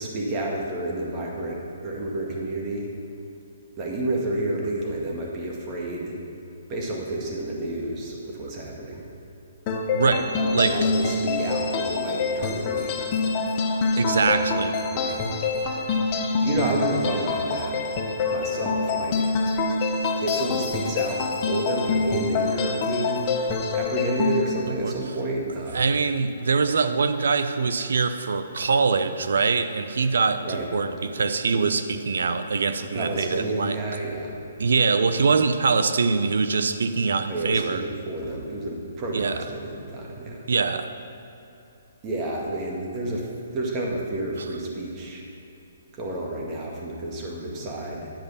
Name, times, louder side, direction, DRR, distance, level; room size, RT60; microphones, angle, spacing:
voice 1, 0.0-2.9 3.8-6.2 6.7-9.1 10.4-13.0 14.0-14.4 14.9-15.2 16.4-17.8 18.3-19.3 20.2-23.2 23.7-25.9 30.4-30.7 32.9-34.3 37.3-40.4 42.0-45.2 45.9-48.1, right 2 dB, 25° right, -2 dB, 1.8 m, -30 dB
sound 1, 9.7-24.4, left 4 dB, 30° left, 0.8 m, -26 dB
voice 2, 9.9-10.8 14.0-14.8 24.8-24.9 25.7-33.8 34.6-37.8 39.1-39.4 40.5-40.9, right 4 dB, 80° right, 10 dB, 0.6 m, -23 dB
10.5 x 5.1 x 7.1 m, 2.9 s
hypercardioid pair, 150°, 0 cm